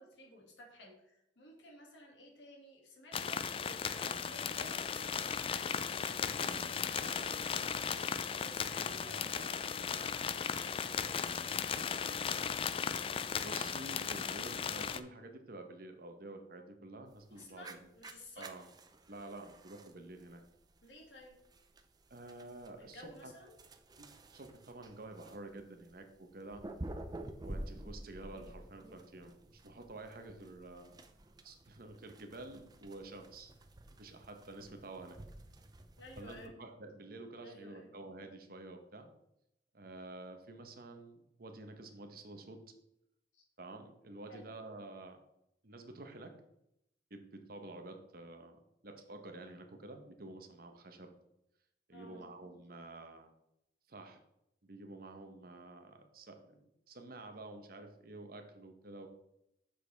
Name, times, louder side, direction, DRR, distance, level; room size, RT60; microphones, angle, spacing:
voice 1, 0.0-12.6 17.3-18.7 20.8-21.3 22.8-23.5 27.8-28.0 28.3-28.5 36.0-36.6 37.4-37.9 43.3-43.4 44.3-44.5 51.9-52.3, left 1 dB, 90° left, 0 dB, 2.2 m, -55 dB
sound 1, 3.1-15.0, left 7 dB, 30° left, 0.3 m, -36 dB
voice 2, 6.3-6.6 8.7-9.1 13.3-17.9 18.4-18.7 19.1-20.4 22.1-23.3 24.0-26.6 27.4-31.0 31.4-33.5 33.9-35.2 36.2-39.1 39.7-42.6 43.6-45.2 45.6-46.3 47.1-51.1 51.9-53.3 53.9-54.2 54.6-59.1, right 2 dB, 55° right, 6 dB, 1.0 m, -50 dB
sound 2, 17.1-36.5, right 1 dB, 20° right, 0.5 m, -51 dB
7.6 x 6.3 x 3.4 m, 0.81 s
head